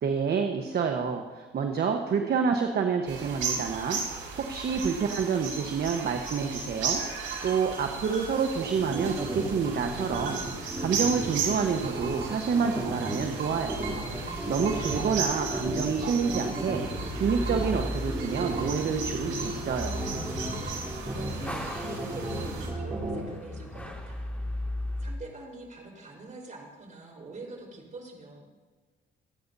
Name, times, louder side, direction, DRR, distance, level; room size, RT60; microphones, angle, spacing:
voice 1, 0.0-7.0 7.4-14.0 14.5-16.8 17.1-20.2, right 6 dB, 55° right, 4 dB, 1.1 m, -28 dB
sound 1, 3.1-22.7, right 5 dB, 80° right, 3.8 m, -36 dB
sound 2, 8.6-23.3, right 1 dB, 20° right, 3.2 m, -34 dB
sound 3, 13.2-25.2, left 1 dB, 5° left, 2.1 m, -38 dB
voice 2, 14.2-15.4 21.0-24.3 24.5-24.7 25.0-28.4, right 3 dB, 40° right, -1 dB, 4.2 m, -45 dB
27.0 x 9.5 x 2.7 m, 1.3 s
cardioid pair, 90°, 20 cm